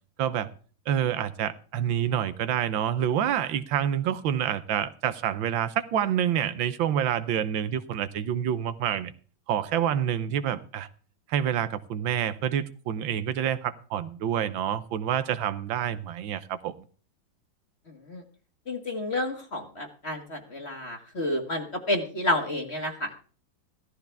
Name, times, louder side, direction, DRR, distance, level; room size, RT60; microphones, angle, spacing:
voice 1, 0.2-0.5 0.9-9.1 9.5-10.9 11.3-16.7, right 9 dB, 90° right, 1.6 m, -27 dB
voice 2, 18.7-23.1, left 1 dB, 35° left, 1.9 m, -30 dB
15.0 x 13.5 x 3.5 m
omnidirectional pair, 2.1 m